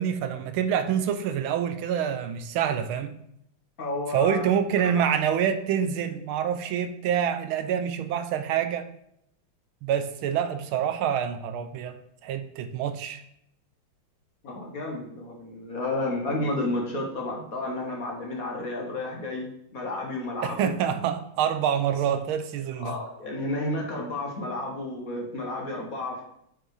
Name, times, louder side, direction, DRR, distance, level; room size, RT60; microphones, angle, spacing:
voice 1, 0.0-3.2 4.1-8.9 9.8-13.2 20.4-22.9, right 8 dB, 80° right, 1.4 m, -26 dB
voice 2, 3.8-4.4 4.8-5.1 14.4-20.7 22.8-26.2, left 2 dB, 45° left, 1.4 m, -31 dB
7.9 x 4.9 x 4.8 m
omnidirectional pair, 2.4 m